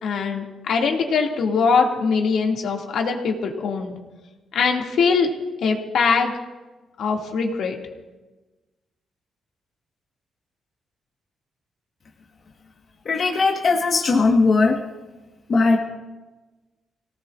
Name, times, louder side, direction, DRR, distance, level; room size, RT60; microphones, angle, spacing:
voice 1, 0.0-3.9 4.5-5.3 5.6-6.3 7.0-7.8, left 5 dB, 70° left, 1 dB, 2.3 m, -22 dB
voice 2, 13.0-14.8 15.5-15.8, left 3 dB, 40° left, 0 dB, 1.4 m, -18 dB
28.0 x 18.0 x 2.5 m, 1.2 s
wide cardioid pair, 160°, 0 cm